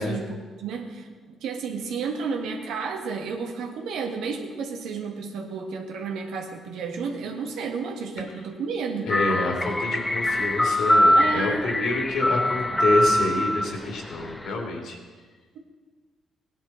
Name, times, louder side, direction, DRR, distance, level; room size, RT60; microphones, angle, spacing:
voice 1, 0.0-9.1 11.1-11.7 12.7-12.8, right 5 dB, 85° right, 3 dB, 1.6 m, -32 dB
voice 2, 9.0-15.0, left 2 dB, 75° left, 0 dB, 2.9 m, -28 dB
sound 1, 9.1-14.5, left 1 dB, 10° left, 0.8 m, -23 dB
17.0 x 10.0 x 4.4 m, 1.5 s
cardioid pair, 90°, 0 cm